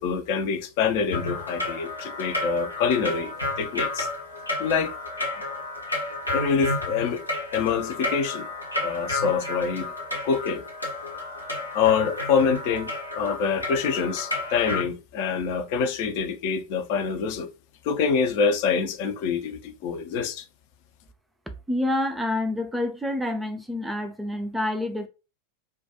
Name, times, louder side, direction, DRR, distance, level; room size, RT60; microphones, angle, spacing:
voice 1, 0.0-4.1 4.6-4.9 6.3-7.2 7.5-8.5 8.8-9.9 10.2-10.6 11.7-12.9 13.2-17.5 17.8-20.4, left 6 dB, 45° left, 0.5 m, -25 dB
sound 1, 1.1-14.8, left 2 dB, 85° left, 0.8 m, -31 dB
voice 2, 21.7-25.1, left 1 dB, 5° right, 0.4 m, -27 dB
2.2 x 2.2 x 2.7 m
figure-of-eight pair, 90°, 0 cm